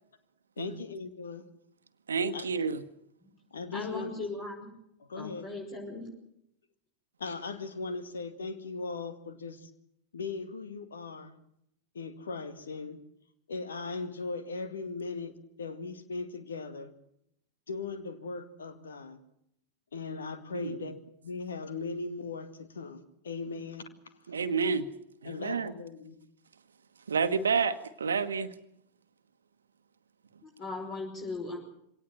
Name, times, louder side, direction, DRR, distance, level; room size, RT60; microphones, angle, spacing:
voice 1, 0.6-1.5 2.3-2.5 3.5-4.1 5.0-5.5 7.2-9.7 10.1-11.3 11.9-13.0 13.5-16.9 17.7-19.2 19.9-23.8 24.3-24.4 25.2-26.2, left 4 dB, 70° left, 10 dB, 2.0 m, -38 dB
voice 2, 2.1-2.8 20.5-20.9 24.3-24.9 25.2-25.7 27.1-28.5, right 5 dB, 70° right, 11 dB, 1.2 m, -29 dB
voice 3, 3.7-4.7 5.1-6.1 30.6-31.6, left 3 dB, 35° left, 0 dB, 5.8 m, -38 dB
23.5 x 18.0 x 7.5 m, 0.76 s
figure-of-eight pair, 90°, 0 cm